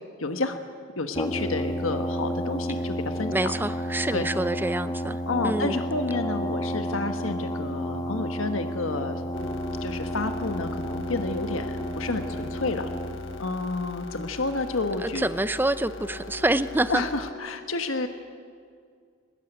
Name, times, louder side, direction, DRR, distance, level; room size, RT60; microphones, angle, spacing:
voice 1, 0.2-0.6 1.0-3.5 4.1-4.3 5.3-12.9 13.4-15.2 16.9-18.1, left 3 dB, 80° left, 7 dB, 1.5 m, -30 dB
Brass instrument, 1.1-13.4, equal, 20° left, 1.3 m, -31 dB
voice 2, 3.3-5.8 15.0-17.0, right 1 dB, 10° right, 13 dB, 0.5 m, -27 dB
sound 1, 9.3-17.3, left 3 dB, 65° left, 1.5 m, -40 dB
22.5 x 20.5 x 9.0 m, 2.1 s
head